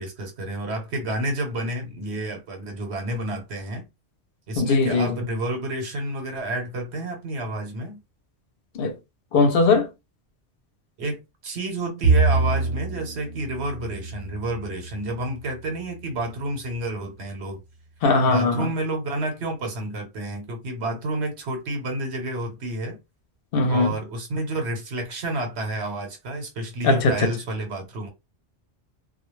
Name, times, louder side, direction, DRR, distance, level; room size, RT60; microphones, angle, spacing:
voice 1, 0.0-3.8 4.5-8.0 11.0-17.6 18.2-23.0 23.7-28.1, right 1 dB, 80° right, 1.1 m, -30 dB
voice 2, 4.6-5.2 8.7-9.0 9.3-9.9 18.0-18.7 23.5-23.9 26.8-27.3, left 3 dB, 65° left, 0.8 m, -20 dB
Bowed string instrument, 12.0-15.5, right 3 dB, 60° right, 0.9 m, -25 dB
2.3 x 2.1 x 3.0 m
omnidirectional pair, 1.1 m